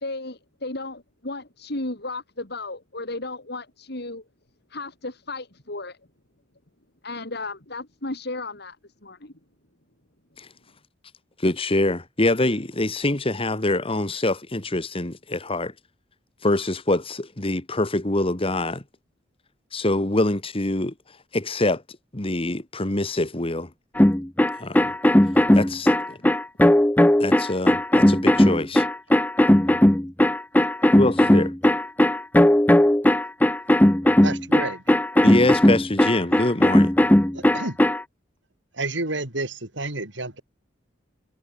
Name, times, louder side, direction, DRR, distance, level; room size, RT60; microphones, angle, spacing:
voice 1, 0.0-4.2 4.7-6.0 7.0-8.8 9.0-9.3, left 2 dB, 60° left, 3.6 m, -34 dB
voice 2, 11.4-15.7 16.4-18.8 19.7-20.9 21.3-21.8 22.1-23.7 24.6-25.0 25.6-26.2 27.2-28.9 31.0-31.5 35.2-36.9, left 2 dB, 30° left, 1.7 m, -24 dB
sound 1, 24.0-38.0, left 1 dB, 10° left, 0.6 m, -17 dB
voice 3, 34.2-34.8 37.3-37.8 38.7-40.4, right 2 dB, 70° right, 5.2 m, -30 dB
head